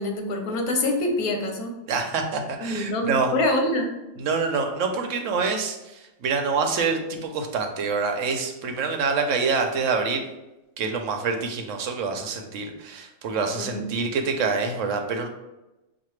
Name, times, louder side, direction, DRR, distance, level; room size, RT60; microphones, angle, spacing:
voice 1, 0.0-1.8 2.6-3.9 13.6-13.8, left 2 dB, 75° left, 4 dB, 1.2 m, -25 dB
voice 2, 1.9-3.3 4.2-10.2 10.8-15.3, right 4 dB, 65° right, 4 dB, 0.8 m, -26 dB
6.0 x 2.3 x 3.1 m, 0.99 s
omnidirectional pair, 1.6 m